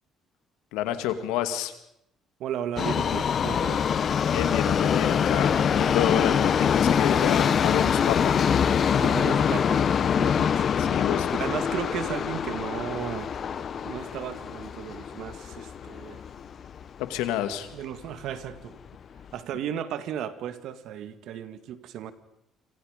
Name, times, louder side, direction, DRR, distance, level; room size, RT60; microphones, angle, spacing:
voice 1, 0.7-1.7 4.3-8.3 10.8-11.4 17.0-17.7, left 11 dB, 85° left, 8 dB, 2.3 m, -29 dB
voice 2, 2.4-3.9 9.0-10.7 11.3-16.2 17.7-18.7 19.3-22.1, right 10 dB, 70° right, 10 dB, 2.1 m, -35 dB
Subway metro underground, 2.8-16.9 17.2-17.3 18.1-18.2 18.5-18.6 19.2-19.3, left 7 dB, 50° left, 1.2 m, -24 dB
27.5 x 27.0 x 5.3 m, 0.80 s
supercardioid pair, 70°, 0 cm